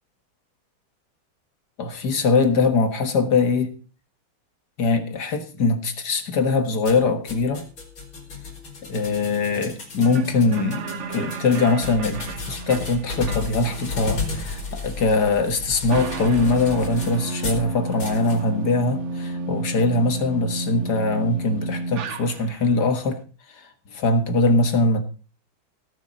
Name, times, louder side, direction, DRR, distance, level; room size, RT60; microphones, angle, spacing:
voice 1, 1.8-3.7 4.8-7.7 8.8-23.2 23.5-25.0, left 3 dB, 55° left, 8 dB, 2.0 m, -22 dB
sound 1, 6.8-17.7 18.0-18.4, left 4 dB, 75° left, 4.7 m, -33 dB
sound 2, 10.0-22.8, right 3 dB, 60° right, 0.7 m, -32 dB
17.0 x 6.8 x 6.4 m, 0.38 s
omnidirectional pair, 2.3 m